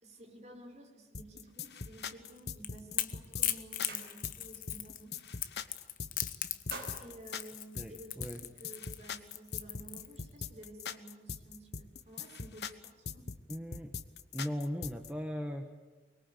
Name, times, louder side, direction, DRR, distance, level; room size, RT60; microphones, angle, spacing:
voice 1, 0.0-5.2 7.0-13.3, right 1 dB, 40° right, 2 dB, 4.8 m, -52 dB
sound 1, 1.1-15.1, left 5 dB, 70° left, 1.2 m, -42 dB
Crackle / Crack, 2.2-10.4, left 13 dB, 50° left, 1.1 m, -38 dB
sound 2, 2.9-3.1 3.4-4.6 4.9-5.2 5.5-6.1 6.4-8.3, right 3 dB, 60° right, 5.0 m, -49 dB
voice 2, 7.7-8.4 13.5-14.0 14.3-15.8, equal, 5° right, 4 dB, 1.2 m, -38 dB
24.5 x 22.0 x 8.3 m, 1.3 s
head